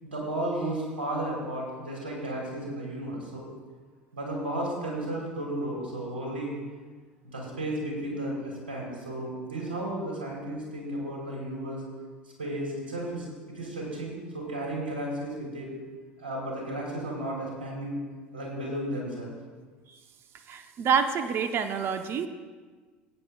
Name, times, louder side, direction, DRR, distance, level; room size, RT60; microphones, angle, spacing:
voice 1, 0.0-3.4 4.1-6.5 7.2-11.8 12.4-15.7 16.2-18.0 18.3-19.3, right 1 dB, 80° right, -3 dB, 3.8 m, -33 dB
voice 2, 20.5-22.3, right 6 dB, 45° right, 8 dB, 0.8 m, -27 dB
19.5 x 9.1 x 2.4 m, 1.4 s
hypercardioid pair, 75°, 6 cm